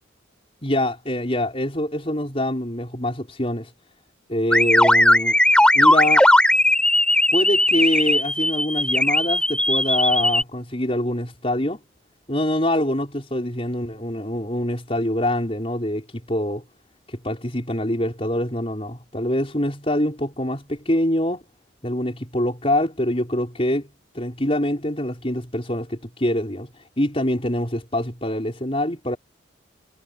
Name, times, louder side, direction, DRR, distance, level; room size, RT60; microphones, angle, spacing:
voice 1, 0.6-3.7 4.3-5.4 5.7-6.3 7.3-11.8 12.3-16.6 17.1-21.4 21.8-23.9 24.1-29.2, left 1 dB, 30° left, 5.7 m, -25 dB
sound 1, 4.5-10.4, left 1 dB, 5° left, 6.5 m, -18 dB
head